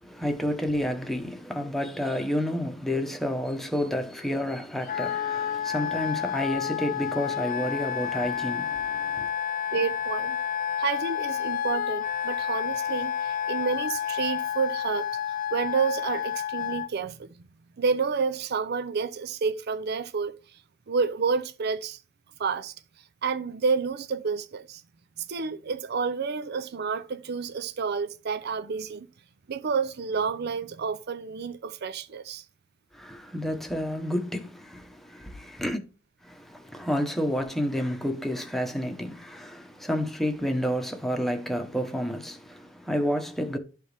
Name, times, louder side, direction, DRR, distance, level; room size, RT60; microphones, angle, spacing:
voice 1, 0.0-9.3 32.9-35.8 36.2-43.6, equal, ahead, 1.1 m, -30 dB
Wind instrument woodwind instrument, 4.9-16.9, left 9 dB, 45° left, 0.4 m, -30 dB
voice 2, 9.7-10.4 10.8-15.2 15.5-17.4 17.8-20.3 20.9-22.0 22.4-22.7 23.2-24.8 25.2-29.1 29.5-32.4, right 5 dB, 55° right, 0.5 m, -29 dB
12.0 x 4.5 x 3.4 m
head